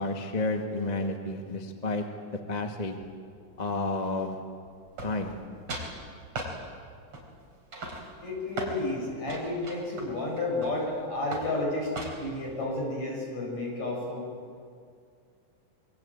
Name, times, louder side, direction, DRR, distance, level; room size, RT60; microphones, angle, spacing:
voice 1, 0.0-2.1 2.5-3.0 3.6-4.4 5.0-5.3, left 2 dB, 20° left, 4 dB, 1.4 m, -31 dB
sound 1, 5.0-5.4 5.7-5.9 6.4-6.6 7.1-7.4 7.7-8.8 9.3-10.9 11.3-11.5 12.0-12.4, right 2 dB, 40° right, 5.2 m, -37 dB
voice 2, 8.2-14.3, left 2 dB, 55° left, -2 dB, 8.8 m, -31 dB
26.5 x 23.0 x 8.8 m, 2.3 s
omnidirectional pair, 3.7 m